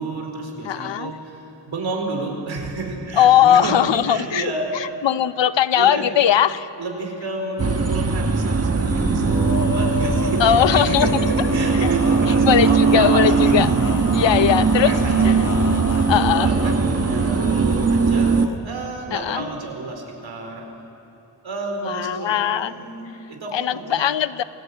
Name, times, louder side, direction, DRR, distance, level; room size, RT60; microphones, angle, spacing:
voice 1, 0.0-3.8 4.1-4.9 5.7-6.1 6.8-13.7 14.2-14.3 14.8-18.3 18.6-20.7 21.4-24.1, right 3 dB, 85° right, 2 dB, 4.4 m, -31 dB
voice 2, 0.6-1.1 3.2-6.7 10.4-11.1 12.5-13.7 14.1-14.9 15.2-15.4 16.1-16.5 19.1-19.5 21.8-22.7 23.5-24.4, left 10 dB, 75° left, 14 dB, 0.8 m, -19 dB
sound 1, 7.6-18.5, right 5 dB, 35° right, 1.2 m, -19 dB
Male singing, 8.8-18.6, left 4 dB, 45° left, 1.5 m, -30 dB
28.0 x 17.0 x 8.7 m, 2.9 s
wide cardioid pair, 95°, 45 cm